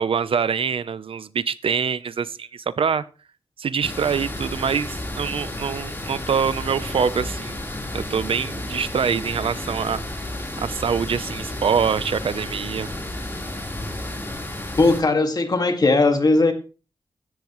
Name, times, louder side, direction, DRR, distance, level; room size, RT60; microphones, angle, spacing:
voice 1, 0.0-3.0 3.6-7.6 7.9-10.0 10.6-12.9, right 6 dB, 75° right, 16 dB, 0.7 m, -24 dB
sound 1, 3.8-15.0, left 1 dB, 25° left, 3.9 m, -32 dB
voice 2, 14.8-16.5, left 3 dB, 45° left, 6 dB, 2.0 m, -18 dB
15.5 x 12.0 x 3.1 m, 0.36 s
wide cardioid pair, 105°, 9 cm